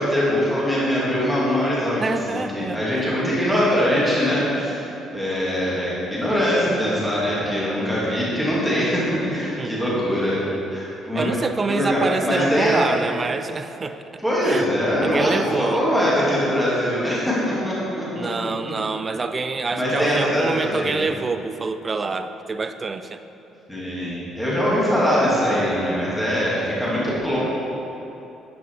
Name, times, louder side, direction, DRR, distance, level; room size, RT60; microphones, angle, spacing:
voice 1, 0.0-2.0 2.3-4.8 5.1-10.4 10.7-11.3 11.7-12.8 14.2-18.1 19.7-20.9 23.7-27.4, equal, ahead, -8 dB, 2.4 m, -22 dB
voice 2, 2.0-3.1 9.6-10.8 11.2-14.7 15.0-15.8 18.2-23.2, right 4 dB, 20° right, 10 dB, 0.4 m, -27 dB
9.8 x 8.6 x 4.7 m, 2.9 s
cardioid pair, 175°, 0 cm